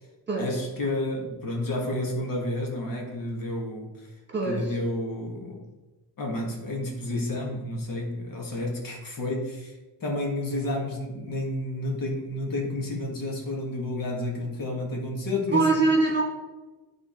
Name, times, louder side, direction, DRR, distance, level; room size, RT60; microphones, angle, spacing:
voice 1, 0.4-3.9 4.4-5.6 6.2-9.7 10.0-15.8, left 1 dB, 50° left, -1 dB, 1.7 m, -30 dB
voice 2, 4.3-4.8 15.5-16.2, right 3 dB, 25° right, -1 dB, 1.8 m, -23 dB
10.5 x 3.7 x 4.4 m, 1.2 s
cardioid pair, 120°, 41 cm